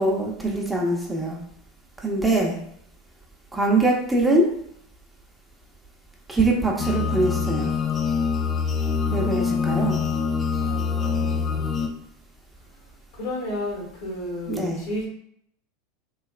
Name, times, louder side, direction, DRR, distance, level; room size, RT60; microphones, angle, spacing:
voice 1, 0.0-1.4 2.0-2.6 3.5-4.5 6.3-7.7 9.1-10.0 14.5-14.8, right 2 dB, 10° right, -2 dB, 0.7 m, -23 dB
sound 1, 6.8-11.9, left 5 dB, 25° left, 0.4 m, -24 dB
voice 2, 9.2-10.3 10.6-11.8 13.1-15.1, left 1 dB, 65° left, -2 dB, 1.3 m, -34 dB
3.1 x 2.7 x 2.4 m, 0.69 s
hypercardioid pair, 85°, 0 cm